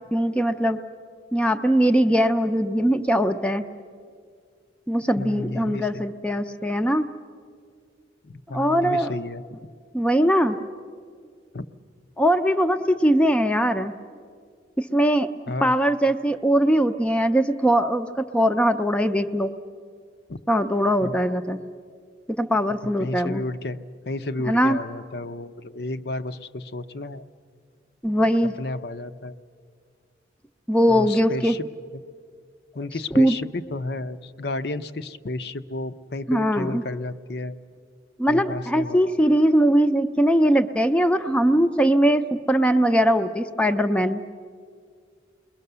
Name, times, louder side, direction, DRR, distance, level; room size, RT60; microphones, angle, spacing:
voice 1, 0.1-0.8 1.3-3.7 4.9-7.1 8.5-9.1 9.9-10.6 12.2-13.9 14.8-15.3 15.6-19.5 20.5-21.6 22.4-23.4 24.5-24.8 28.0-28.6 30.7-31.5 33.1-33.4 36.3-36.8 38.2-42.2 42.5-44.2, equal, 5° left, 6 dB, 0.5 m, -21 dB
voice 2, 5.2-6.0 8.2-9.7 11.5-11.6 15.5-15.8 20.3-20.4 21.0-21.3 23.0-23.8 24.0-27.2 28.6-29.4 30.9-31.7 31.9-32.0 32.7-37.6 38.3-39.2, left 2 dB, 60° left, 11 dB, 0.7 m, -32 dB
28.5 x 21.5 x 6.8 m, 2.1 s
head